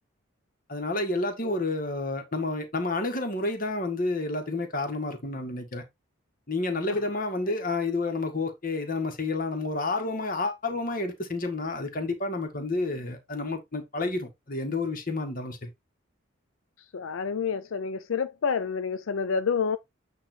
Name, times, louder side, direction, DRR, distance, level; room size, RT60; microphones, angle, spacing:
voice 1, 0.7-5.8 6.5-15.7, left 2 dB, 45° left, 1.8 m, -30 dB
voice 2, 16.9-19.8, left 6 dB, 75° left, 0.5 m, -28 dB
8.9 x 3.1 x 4.4 m
head